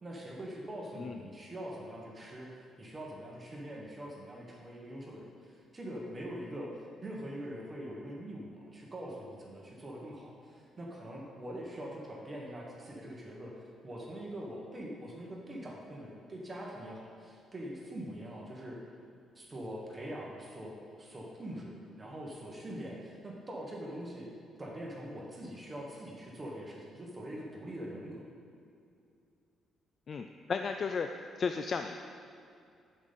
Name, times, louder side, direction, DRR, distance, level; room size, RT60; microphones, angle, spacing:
voice 1, 0.0-2.5 2.8-6.7 7.0-13.5 13.8-18.8 19.3-24.3 24.6-28.3, equal, 25° right, -2 dB, 1.3 m, -43 dB
voice 2, 30.1-31.1 31.4-32.0, left 5 dB, 45° left, 6 dB, 0.3 m, -34 dB
10.5 x 5.3 x 4.1 m, 2.5 s
cardioid pair, 90°, 0 cm